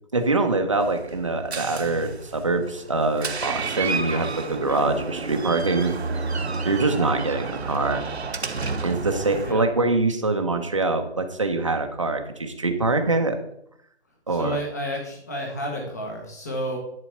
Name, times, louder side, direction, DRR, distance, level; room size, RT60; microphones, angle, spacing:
voice 1, 0.1-5.9 6.6-8.0 8.8-13.4 14.3-14.6, right 3 dB, 30° right, 5 dB, 0.9 m, -24 dB
Door, 0.8-9.5, right 4 dB, 70° right, 1.2 m, -31 dB
voice 2, 14.3-16.8, equal, 15° left, -1 dB, 1.5 m, -31 dB
10.5 x 4.1 x 7.7 m, 0.74 s
hypercardioid pair, 180°, 34 cm